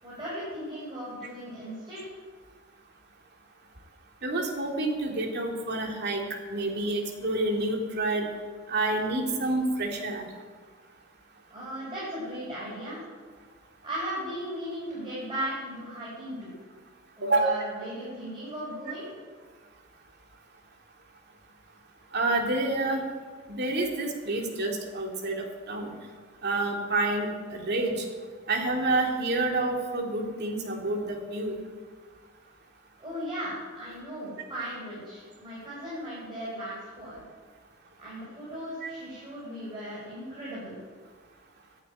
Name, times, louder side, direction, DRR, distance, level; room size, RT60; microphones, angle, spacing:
voice 1, 0.0-2.1 11.5-13.0 13.8-16.5 17.2-19.1 33.0-37.2 38.0-40.8, equal, 25° right, -9 dB, 5.8 m, -37 dB
voice 2, 4.2-6.2 6.5-8.3 8.7-10.2 17.2-17.6 22.1-23.0 23.5-25.9 26.4-27.9 28.5-31.6 38.8-38.9, right 2 dB, 55° right, 1 dB, 2.4 m, -28 dB
11.5 x 10.0 x 9.0 m, 1.5 s
head